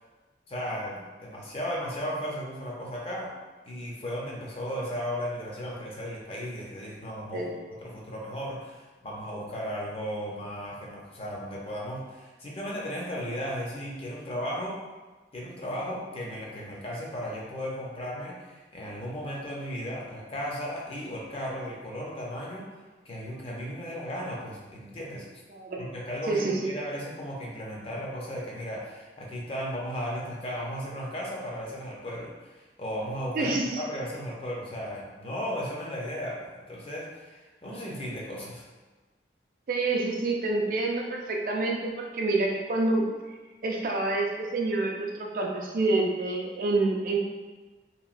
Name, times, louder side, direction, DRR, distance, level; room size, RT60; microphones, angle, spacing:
voice 1, 0.5-3.3 3.6-7.5 7.8-14.8 15.3-22.7 23.1-25.3 25.8-38.6, equal, 30° left, -3 dB, 0.5 m, -35 dB
voice 2, 26.3-26.7 33.3-33.8 39.7-43.0 43.6-47.2, right 2 dB, 50° right, 0 dB, 0.4 m, -27 dB
3.0 x 2.7 x 2.4 m, 1.3 s
head